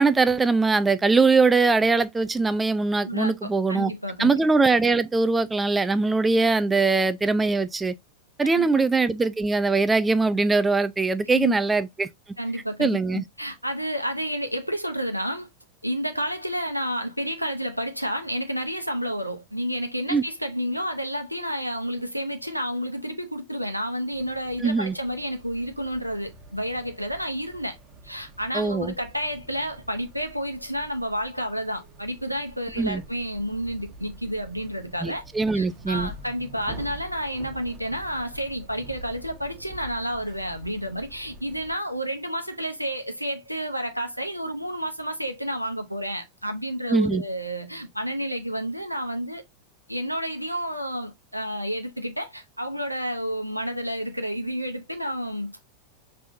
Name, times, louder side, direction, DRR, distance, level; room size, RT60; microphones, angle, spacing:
voice 1, 0.0-3.9 4.2-7.9 8.4-12.1 12.8-13.2 20.1-20.2 24.6-24.9 28.5-28.9 32.8-33.0 35.0-36.1 46.9-47.2, right 3 dB, 10° right, 0.3 m, -22 dB
voice 2, 3.0-4.3 8.5-8.7 11.2-11.6 12.4-15.5 15.8-27.8 28.0-35.2 35.5-49.4 49.9-55.5, equal, 90° right, 0.8 m, -30 dB
sound 1, 24.1-41.7, right 1 dB, 25° right, 1.2 m, -45 dB
5.3 x 3.3 x 2.6 m
figure-of-eight pair, 90°, 0 cm